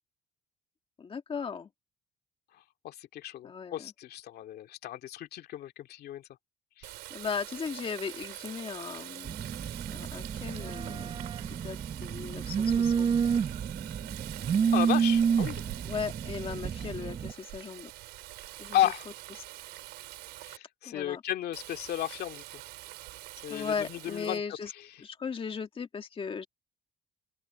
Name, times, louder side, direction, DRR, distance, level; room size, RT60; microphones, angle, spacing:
voice 1, 1.0-1.7 3.4-3.9 7.1-9.5 9.9-13.1 15.9-17.9 18.6-18.8 20.9-21.2 23.5-24.7 25.0-26.5, left 6 dB, 30° left, 1.9 m, -37 dB
voice 2, 2.8-6.2 6.8-6.9 14.7-15.6 18.7-19.1 20.4-22.4 23.4-24.9, left 12 dB, 70° left, 2.3 m, -33 dB
Water tap faucet, 6.8-20.6 21.5-24.4, right 18 dB, 90° right, 4.6 m, -45 dB
Telephone, 9.2-17.3, right 7 dB, 35° right, 0.7 m, -29 dB
open air
cardioid pair, 110°, 17 cm